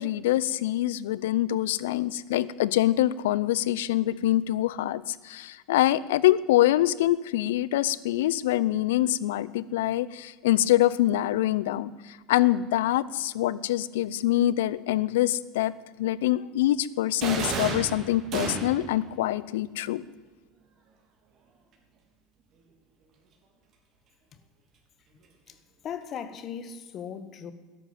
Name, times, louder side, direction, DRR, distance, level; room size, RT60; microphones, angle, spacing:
voice 1, 0.0-11.9 12.3-15.7 16.0-20.0, left 14 dB, 75° left, 0.6 m, -25 dB
sound 1, 17.2-19.0, right 4 dB, 50° right, 3.8 m, -31 dB
voice 2, 25.8-27.5, left 8 dB, 45° left, 1.6 m, -37 dB
13.5 x 11.0 x 9.2 m
hypercardioid pair, 80°, 0 cm